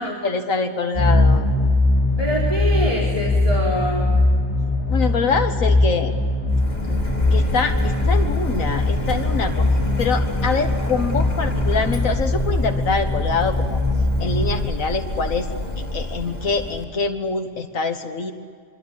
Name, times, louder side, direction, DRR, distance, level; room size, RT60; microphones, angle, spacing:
voice 1, 0.0-1.5 4.9-6.1 6.9-9.7 10.0-13.8 14.2-15.5 15.9-18.3, left 4 dB, 80° left, 5 dB, 1.8 m, -25 dB
sound 1, 0.9-14.6, left 2 dB, 10° left, 5.4 m, -21 dB
voice 2, 2.2-4.1, equal, 25° right, -5 dB, 4.4 m, -25 dB
Printer, 6.5-16.8, left 1 dB, 30° left, 4.2 m, -28 dB
25.5 x 24.5 x 8.5 m, 2.1 s
omnidirectional pair, 1.4 m